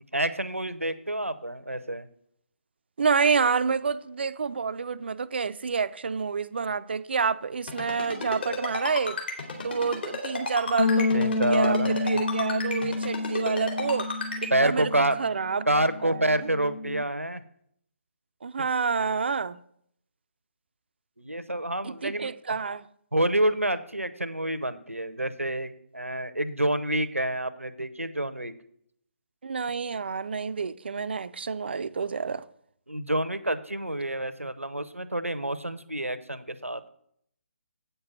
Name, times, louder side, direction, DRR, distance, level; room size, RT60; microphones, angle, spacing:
voice 1, 0.1-2.1 11.1-12.2 14.5-15.2 15.7-17.4 18.6-18.7 21.2-22.3 23.1-28.5 32.9-36.9, right 1 dB, 90° right, 0.8 m, -28 dB
voice 2, 3.0-9.2 9.6-14.1 14.4-14.9 15.2-15.7 16.0-16.2 18.4-19.6 21.8-22.8 29.4-32.4, right 5 dB, 50° right, 0.4 m, -28 dB
Ringtone, 7.7-14.5, left 3 dB, 50° left, 2.7 m, -32 dB
Bass guitar, 10.8-17.0, left 3 dB, 65° left, 0.8 m, -29 dB
8.5 x 6.8 x 5.9 m
figure-of-eight pair, 145°, 7 cm